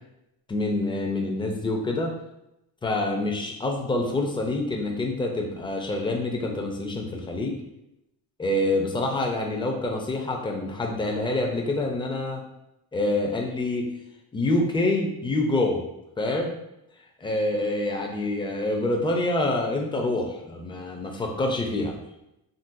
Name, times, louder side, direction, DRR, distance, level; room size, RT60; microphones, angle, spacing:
voice 1, 0.5-2.1 2.8-7.6 8.4-12.4 12.9-13.9 14.3-15.8 16.2-16.5 17.2-22.0, left 2 dB, 10° left, 1 dB, 0.5 m, -26 dB
3.8 x 2.1 x 2.5 m, 0.87 s
cardioid pair, 95°, 41 cm